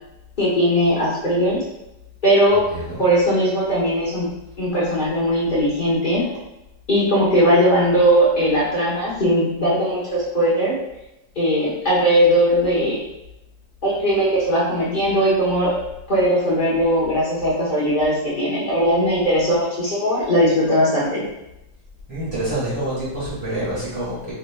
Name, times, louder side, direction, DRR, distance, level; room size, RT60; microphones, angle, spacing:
voice 1, 0.4-1.6 2.2-2.6 3.0-4.3 4.6-6.2 6.9-10.7 11.4-13.0 13.8-15.8 16.1-21.2, equal, 35° left, -7 dB, 0.9 m, -19 dB
voice 2, 22.1-24.3, right 1 dB, 20° right, -11 dB, 1.2 m, -27 dB
5.2 x 2.9 x 2.3 m, 0.89 s
omnidirectional pair, 2.0 m